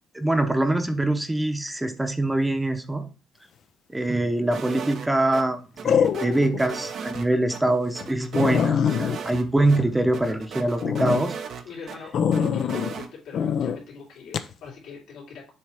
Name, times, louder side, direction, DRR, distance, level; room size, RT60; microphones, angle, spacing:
voice 1, 0.1-3.1 3.9-11.4, right 1 dB, 10° right, 7 dB, 0.9 m, -24 dB
sound 1, 4.2-4.7 5.8-6.6 7.1-7.2 7.7-7.8 8.0-8.1 8.3-10.4 10.8-11.2 12.1-12.9 13.3-13.8 14.3-14.5, left 7 dB, 65° left, 0.5 m, -24 dB
sound 2, 4.5-5.4 5.8-7.6 7.9-9.4 9.7-9.8 10.1-12.0 12.3-13.1, right 6 dB, 65° right, 0.9 m, -36 dB
voice 2, 11.6-15.5, left 5 dB, 85° left, -4 dB, 3.0 m, -42 dB
7.1 x 3.2 x 4.8 m, 0.36 s
cardioid pair, 90°, 0 cm